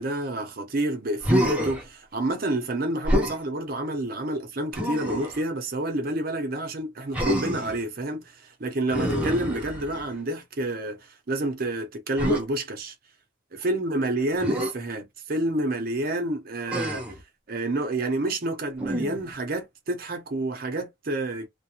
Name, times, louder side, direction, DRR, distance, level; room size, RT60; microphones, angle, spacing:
voice 1, 0.0-12.9 13.5-17.0 17.5-21.5, right 1 dB, 50° right, 0.6 m, -29 dB
Human voice, 1.2-1.8 3.0-3.4 4.7-5.4 7.1-7.8 8.9-10.1 12.2-12.4 14.4-14.7 16.7-17.2 18.8-19.3, equal, 5° right, 0.6 m, -26 dB
2.4 x 2.1 x 2.9 m
head